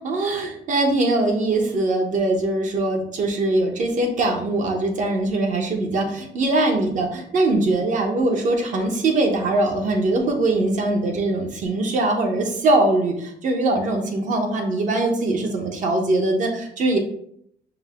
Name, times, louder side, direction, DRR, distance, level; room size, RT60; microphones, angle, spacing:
voice 1, 0.0-17.0, right 2 dB, 50° right, 3 dB, 1.0 m, -22 dB
5.5 x 2.2 x 3.5 m, 0.69 s
cardioid pair, 110°, 17 cm